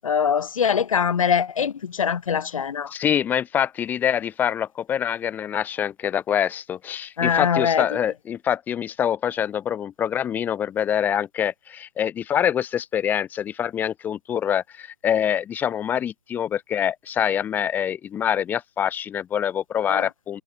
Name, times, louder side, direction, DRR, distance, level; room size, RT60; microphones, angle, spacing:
voice 1, 0.0-2.9 7.2-7.8 19.9-20.0, left 7 dB, 55° left, 1.5 m, -22 dB
voice 2, 2.9-20.4, left 9 dB, 10° left, 1.0 m, -25 dB
figure-of-eight pair, 150°, 20 cm